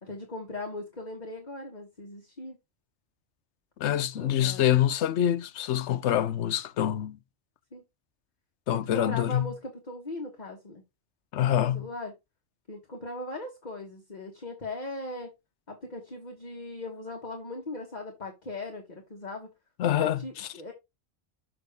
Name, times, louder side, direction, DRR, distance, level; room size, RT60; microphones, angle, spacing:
voice 1, 0.0-2.6 4.2-4.8 7.7-7.8 8.7-10.8 11.6-12.1 12.7-15.3 15.7-19.5 20.0-20.7, left 2 dB, 40° left, 1.5 m, -39 dB
voice 2, 3.8-7.2 8.7-9.5 11.3-11.9 19.8-20.2, left 11 dB, 80° left, 0.9 m, -25 dB
6.7 x 6.2 x 3.4 m
omnidirectional pair, 1.2 m